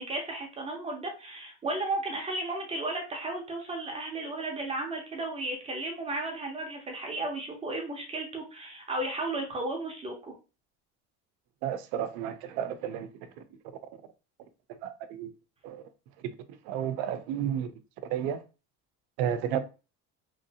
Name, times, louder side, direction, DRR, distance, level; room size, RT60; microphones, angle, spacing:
voice 1, 0.0-10.3, right 2 dB, 20° right, 0.6 m, -34 dB
voice 2, 11.6-13.3 14.7-15.3 15.6-15.8 16.2-16.3 16.6-17.7 18.1-18.4 19.2-19.6, right 9 dB, 80° right, 0.6 m, -32 dB
3.0 x 2.5 x 2.7 m
cardioid pair, 155°, 33 cm